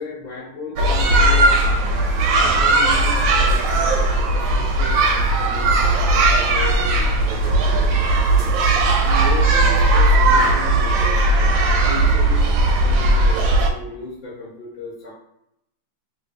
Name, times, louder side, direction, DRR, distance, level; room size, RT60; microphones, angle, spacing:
voice 1, 0.0-1.6 2.4-7.8 8.1-8.7 9.0-15.1, left 3 dB, 25° left, -7 dB, 1.0 m, -35 dB
sound 1, 0.8-13.7, right 2 dB, 80° right, 1.3 m, -17 dB
3.3 x 2.6 x 3.4 m, 0.79 s
omnidirectional pair, 2.1 m